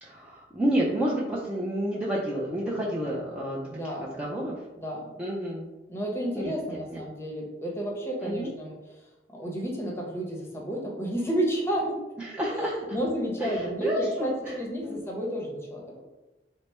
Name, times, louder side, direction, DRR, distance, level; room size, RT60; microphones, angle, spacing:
voice 1, 0.0-3.7 4.0-4.5 5.2-5.7 6.4-6.5 6.9-7.0 8.2-8.5 12.2-12.7 13.4-14.6 14.8-15.0, equal, 5° right, -6 dB, 0.4 m, -30 dB
voice 2, 3.7-4.5 4.8-5.0 5.9-8.8 9.3-12.0 12.5-16.0, right 1 dB, 15° left, -1 dB, 0.7 m, -31 dB
3.2 x 2.0 x 4.2 m, 1.0 s
head